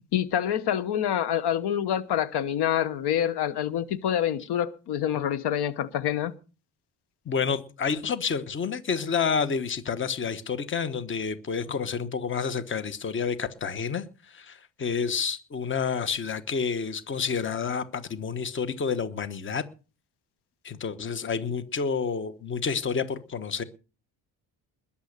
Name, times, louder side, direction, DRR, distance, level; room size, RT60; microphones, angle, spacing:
voice 1, 0.1-6.3, left 10 dB, 70° left, 1.2 m, -26 dB
voice 2, 7.3-19.6 20.6-23.6, left 6 dB, 30° left, 1.2 m, -29 dB
21.0 x 7.2 x 6.6 m
cardioid pair, 150°, 41 cm